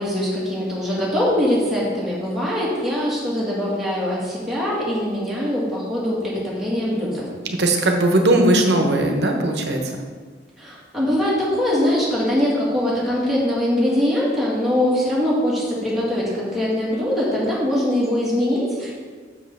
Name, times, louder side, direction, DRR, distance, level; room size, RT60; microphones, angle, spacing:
voice 1, 0.0-7.3 10.6-19.1, left 1 dB, ahead, -7 dB, 2.0 m, -22 dB
voice 2, 7.6-9.8, right 1 dB, 65° right, 3 dB, 1.0 m, -18 dB
6.8 x 5.5 x 5.4 m, 1.5 s
head